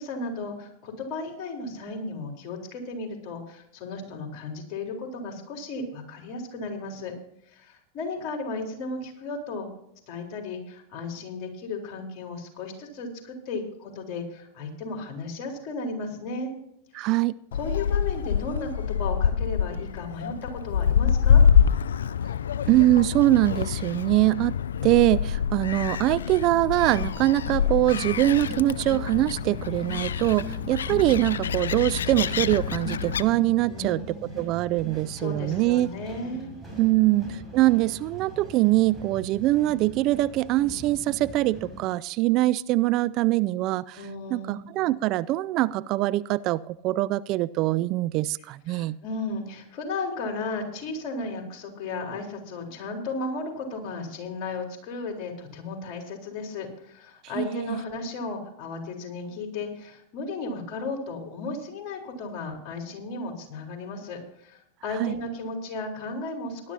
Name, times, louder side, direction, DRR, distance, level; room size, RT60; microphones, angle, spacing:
voice 1, 0.0-7.1 7.5-9.7 10.1-16.5 16.9-17.1 17.5-21.4 33.7-34.5 35.2-37.4 44.0-44.9 48.7-66.7, left 3 dB, 45° left, 1 dB, 4.1 m, -35 dB
voice 2, 16.9-17.3 22.7-24.6 24.8-35.9 36.8-44.0 44.3-49.0 57.4-57.8 65.0-65.1, right 17 dB, 50° right, 19 dB, 0.4 m, -23 dB
Gull seagull, 17.5-33.2, left 7 dB, 80° left, 0.4 m, -26 dB
sound 1, 26.8-41.8, right 1 dB, 5° right, 6.3 m, -40 dB
19.0 x 11.5 x 2.8 m, 0.73 s
hypercardioid pair, 95°, 0 cm